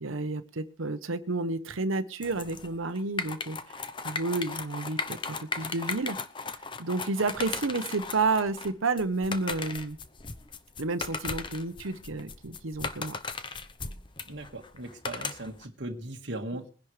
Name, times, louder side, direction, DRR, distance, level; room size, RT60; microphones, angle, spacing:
voice 1, 0.0-6.2 6.8-10.0 10.8-13.2, right 3 dB, 85° right, 9 dB, 0.9 m, -31 dB
sound 1, 2.2-15.6, left 4 dB, 25° left, 0.7 m, -37 dB
voice 2, 14.3-16.7, right 1 dB, 60° right, 2 dB, 1.7 m, -38 dB
21.5 x 10.5 x 3.3 m, 0.37 s
head